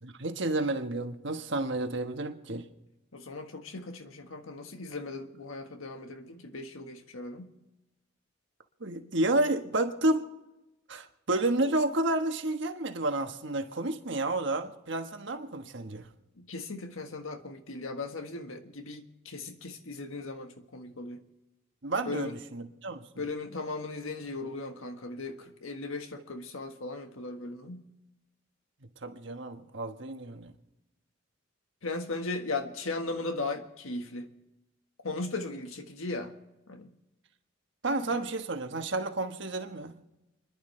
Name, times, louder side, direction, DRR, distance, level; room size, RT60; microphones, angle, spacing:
voice 1, 0.0-2.7 8.8-10.3 10.9-16.1 21.8-23.3 29.0-30.5 37.8-40.0, right 2 dB, 60° right, 1.4 m, -31 dB
voice 2, 3.1-7.5 16.4-21.2 22.1-22.3 23.2-27.9 31.8-34.3 35.0-36.3 36.7-36.9 38.1-38.2, left 3 dB, 90° left, 1.6 m, -37 dB
29.5 x 11.0 x 3.3 m
head